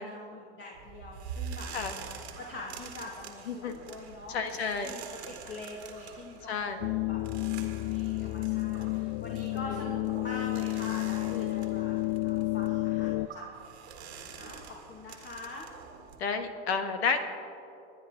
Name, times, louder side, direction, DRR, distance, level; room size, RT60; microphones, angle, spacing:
voice 1, 0.0-15.7, left 2 dB, 35° left, -2 dB, 2.3 m, -45 dB
sound 1, 0.7-16.2, right 6 dB, 85° right, 1.8 m, -46 dB
voice 2, 4.3-5.0 6.5-6.8 9.7-9.8 11.3-11.5 16.2-17.2, left 5 dB, 80° left, 7 dB, 1.6 m, -31 dB
sound 2, 6.8-13.3, left 20 dB, 60° left, 0.5 m, -31 dB
27.5 x 9.8 x 3.9 m, 2.6 s
hypercardioid pair, 80°, 32 cm